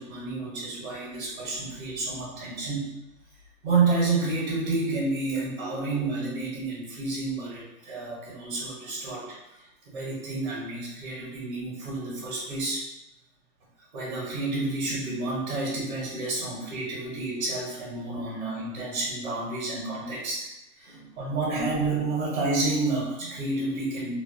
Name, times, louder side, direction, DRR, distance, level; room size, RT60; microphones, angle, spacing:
voice 1, 0.0-2.9 3.6-9.3 9.6-9.7 9.9-12.9 13.9-20.5 20.8-24.1, right 3 dB, 35° right, -4 dB, 0.6 m, -30 dB
2.5 x 2.2 x 2.4 m, 0.94 s
hypercardioid pair, 175°, 45 cm